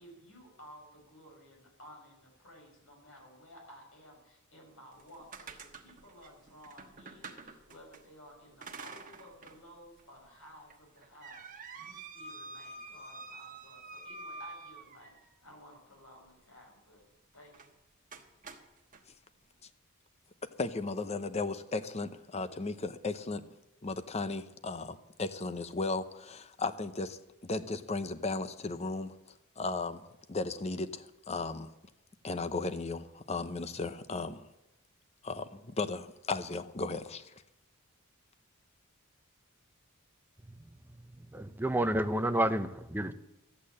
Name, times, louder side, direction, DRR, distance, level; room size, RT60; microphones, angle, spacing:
voice 1, 0.0-17.0 17.3-17.5, equal, 70° left, 5.5 m, -55 dB
sound 1, 4.9-8.0 8.6-9.6 10.0-10.1 10.7-15.4 17.5-17.7 18.1-19.0, right 3 dB, 40° right, 1.3 m, -47 dB
voice 2, 20.6-23.4 23.8-29.1 29.6-30.0 30.3-31.7 32.2-34.4 35.2-37.3, left 3 dB, 30° left, 0.7 m, -35 dB
voice 3, 41.2-43.1, right 1 dB, 10° right, 0.6 m, -30 dB
13.5 x 8.5 x 8.6 m
head